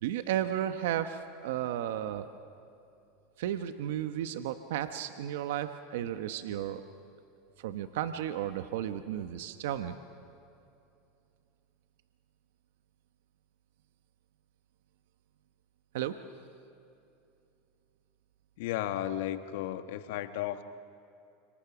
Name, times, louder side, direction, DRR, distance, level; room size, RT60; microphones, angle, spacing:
voice 1, 0.0-2.3 3.4-6.8 7.6-10.0 15.9-16.2, right 11 dB, 80° right, 9 dB, 1.0 m, -33 dB
voice 2, 18.6-20.6, left 12 dB, 75° left, 9 dB, 1.3 m, -34 dB
29.5 x 26.0 x 6.1 m, 2.7 s
supercardioid pair, 120°, 0 cm